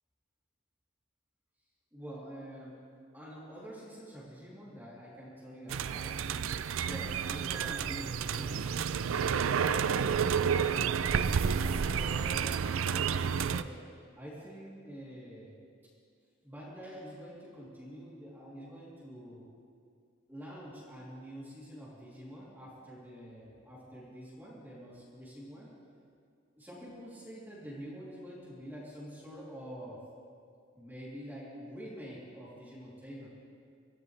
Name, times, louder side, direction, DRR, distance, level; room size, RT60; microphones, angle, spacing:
voice 1, 1.9-2.8 3.1-6.6 6.9-8.8 9.6-13.7 14.2-15.5 16.4-19.5 20.3-25.7 26.5-30.0 30.7-33.3, equal, 10° right, -8 dB, 3.1 m, -46 dB
sound 1, 5.7-13.6, right 7 dB, 80° right, 0.4 m, -30 dB
23.5 x 14.5 x 3.3 m, 2.3 s
head